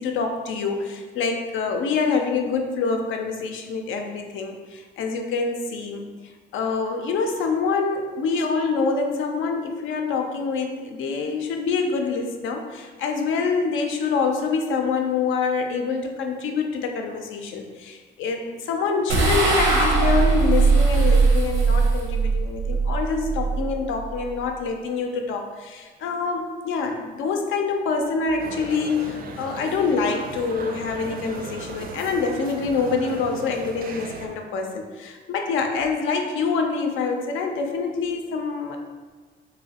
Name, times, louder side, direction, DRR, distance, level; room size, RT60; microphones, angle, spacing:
voice 1, 0.0-38.8, left 4 dB, 80° left, 4 dB, 0.4 m, -26 dB
sound 1, 19.1-24.5, right 4 dB, 85° right, 0.6 m, -20 dB
sound 2, 28.4-34.3, right 3 dB, 50° right, 0.4 m, -36 dB
3.0 x 2.7 x 2.8 m, 1.4 s
cardioid pair, 90°, 20 cm